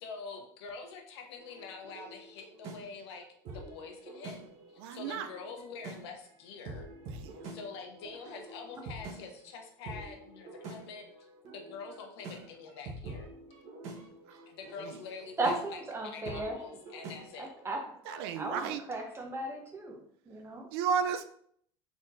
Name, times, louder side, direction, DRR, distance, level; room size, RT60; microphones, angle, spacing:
voice 1, 0.0-3.2 3.5-4.4 4.7-6.9 7.4-11.3 11.5-13.3 14.5-17.5, left 5 dB, 80° left, 3 dB, 0.9 m, -46 dB
sound 1, 1.4-17.7, right 2 dB, 55° right, 1.0 m, -47 dB
voice 2, 4.8-5.3 7.1-7.3 14.3-14.4 14.8-15.0 18.1-18.8 20.7-21.2, right 7 dB, 75° right, 9 dB, 0.5 m, -33 dB
voice 3, 15.4-16.5 17.4-17.8 18.1-20.0 20.3-20.7, right 2 dB, 20° right, 1 dB, 1.0 m, -35 dB
3.9 x 3.5 x 2.6 m, 0.63 s
supercardioid pair, 100°, 13 cm